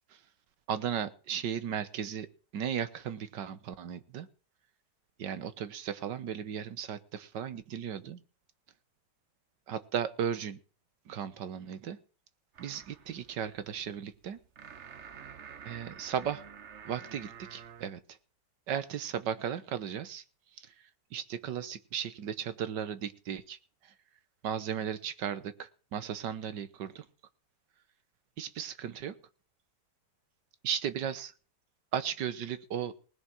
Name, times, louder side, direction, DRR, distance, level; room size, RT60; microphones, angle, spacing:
voice 1, 0.7-2.3 2.5-4.3 5.2-8.2 9.7-10.6 11.1-12.0 12.6-14.4 15.7-16.4 16.8-18.2 18.7-20.2 20.6-20.8 21.1-23.9 24.4-27.1 28.4-29.2 30.6-31.3 31.9-32.9, right 8 dB, 85° right, 13 dB, 1.7 m, -36 dB
sound 1, 12.5-17.9, right 7 dB, 50° right, 1.1 m, -49 dB
19.5 x 6.9 x 6.3 m, 0.39 s
omnidirectional pair, 1.8 m